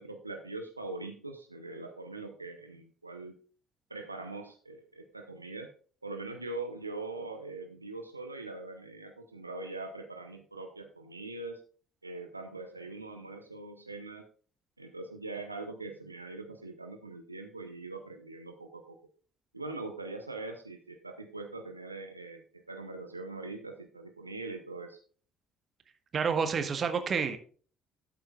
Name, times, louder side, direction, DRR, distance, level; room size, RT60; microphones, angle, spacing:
voice 1, 0.0-3.3 3.9-5.7 6.0-11.6 12.0-14.2 14.8-19.0 19.5-25.0, right 3 dB, 90° right, 5 dB, 0.7 m, -42 dB
voice 2, 26.1-27.4, right 6 dB, 40° right, 9 dB, 1.3 m, -29 dB
12.5 x 7.8 x 2.4 m, 0.43 s
figure-of-eight pair, 50°, 0 cm